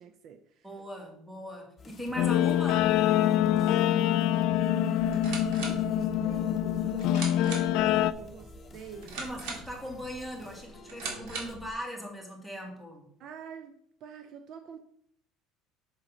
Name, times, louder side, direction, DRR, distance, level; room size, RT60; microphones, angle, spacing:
voice 1, 0.0-0.7 3.6-4.3 4.9-9.2 13.2-13.8 14.0-14.8, right 7 dB, 50° right, 8 dB, 0.6 m, -46 dB
voice 2, 0.6-3.0 9.2-13.1, equal, ahead, 0 dB, 1.8 m, -39 dB
sound 1, 1.8-11.6, left 2 dB, 25° left, 1.0 m, -51 dB
Guitar, 2.2-8.1, left 11 dB, 65° left, 0.3 m, -25 dB
sound 2, 5.0-11.7, right 4 dB, 70° right, 2.0 m, -41 dB
6.4 x 4.1 x 5.0 m, 0.67 s
cardioid pair, 135°, 0 cm